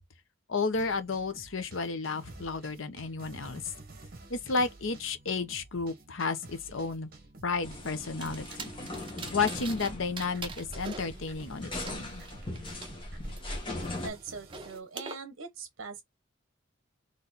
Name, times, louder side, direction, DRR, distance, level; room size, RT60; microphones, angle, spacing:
voice 1, 0.5-3.7 4.3-7.1 7.4-8.7 9.3-12.2, left 4 dB, 75° left, 0.8 m, -32 dB
sound 1, 0.7-10.0 10.2-14.8, right 2 dB, 45° right, 1.3 m, -52 dB
sound 2, 7.6-14.1, left 1 dB, 25° left, 1.4 m, -40 dB
sound 3, 8.2-9.9 10.2-12.9 13.3-15.2, right 4 dB, 25° right, 0.8 m, -44 dB
voice 2, 14.0-16.0, right 4 dB, 70° right, 0.8 m, -42 dB
4.1 x 3.2 x 4.0 m
head